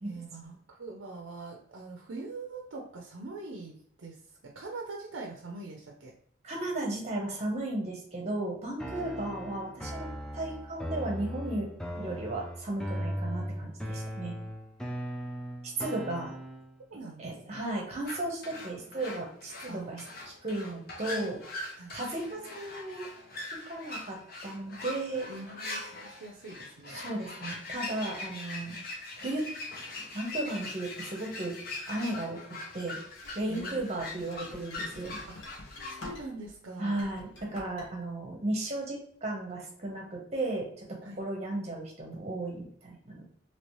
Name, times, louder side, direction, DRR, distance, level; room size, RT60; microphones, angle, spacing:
voice 1, 0.0-4.2 4.4-6.1 8.9-9.1 15.8-15.9 16.9-17.6 19.7-20.0 21.7-21.9 25.3-27.0 28.7-28.9 33.5-34.0 35.3-37.0 41.0-41.2, right 3 dB, 80° right, 0 dB, 0.5 m, -43 dB
voice 2, 6.4-10.1 10.3-11.7 11.9-14.3 15.8-16.3 17.2-24.2 24.4-25.3 26.9-28.8 29.2-29.4 30.0-31.5 31.9-32.4 32.7-33.0 33.4-35.2 36.8-43.2, right 2 dB, 35° right, 0 dB, 0.8 m, -35 dB
sound 1, 8.8-16.8, equal, 5° left, 0.3 m, -38 dB
sound 2, 18.0-36.1, left 2 dB, 50° left, 0.6 m, -42 dB
sound 3, 33.2-36.5 36.9-37.9, left 2 dB, 75° left, 0.9 m, -47 dB
3.0 x 2.8 x 3.0 m, 0.63 s
head